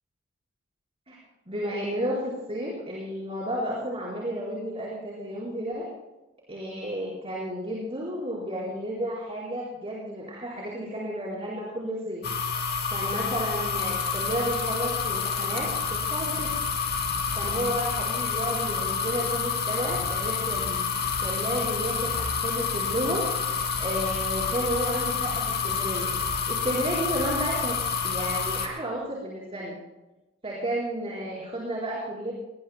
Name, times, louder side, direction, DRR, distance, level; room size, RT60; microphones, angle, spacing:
voice 1, 1.5-5.8 6.5-12.2 12.9-15.7 16.0-16.5 17.4-20.8 21.2-23.3 23.8-26.1 26.5-27.8 28.0-29.7 30.4-32.3, equal, 30° right, -5 dB, 4.7 m, -32 dB
sound 1, 12.2-28.7, left 5 dB, 55° left, 2.6 m, -28 dB
22.5 x 20.0 x 2.3 m, 1.0 s
head